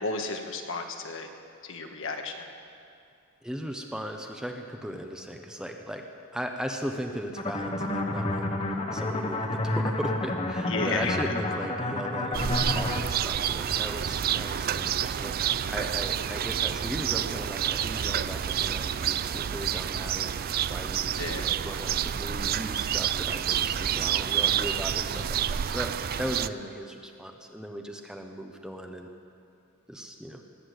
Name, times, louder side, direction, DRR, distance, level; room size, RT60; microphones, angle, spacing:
voice 1, 0.0-1.3 1.6-2.4 10.7-11.3 21.2-21.4, left 3 dB, 65° left, 4 dB, 1.4 m, -33 dB
voice 2, 3.4-6.0 6.3-8.5 8.9-29.1 29.9-30.4, equal, 5° right, 3 dB, 0.9 m, -37 dB
sound 1, 7.4-13.0, left 2 dB, 30° left, 1.1 m, -30 dB
sound 2, 12.3-26.5, right 9 dB, 45° right, 0.4 m, -29 dB
19.5 x 8.6 x 8.1 m, 2.4 s
head